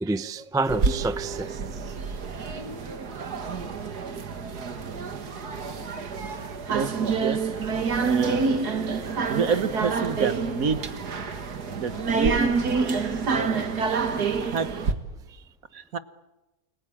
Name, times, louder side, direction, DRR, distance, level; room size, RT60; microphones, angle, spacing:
voice 1, 0.0-1.9 8.9-9.0 12.7-12.9 14.2-14.6 15.3-15.4, right 3 dB, 5° right, 0.3 m, -30 dB
sound 1, 0.7-14.9, right 5 dB, 80° right, 2.4 m, -28 dB
voice 2, 8.0-8.6 9.3-10.8 11.8-12.5 14.5-14.7 15.7-16.0, right 5 dB, 60° right, 1.7 m, -27 dB
29.0 x 21.5 x 8.8 m
omnidirectional pair, 1.7 m